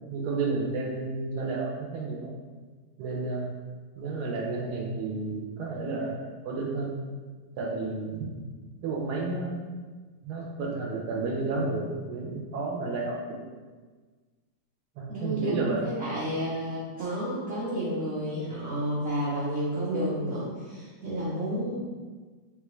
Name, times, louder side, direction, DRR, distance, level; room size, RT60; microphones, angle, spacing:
voice 1, 0.1-2.3 3.0-3.5 4.0-7.0 7.6-8.3 8.8-9.6 10.2-13.4 15.0-15.9, right 3 dB, 80° right, -1 dB, 1.1 m, -31 dB
voice 2, 15.1-21.8, right 1 dB, 55° right, -8 dB, 0.7 m, -31 dB
3.8 x 2.2 x 3.0 m, 1.4 s
omnidirectional pair, 1.7 m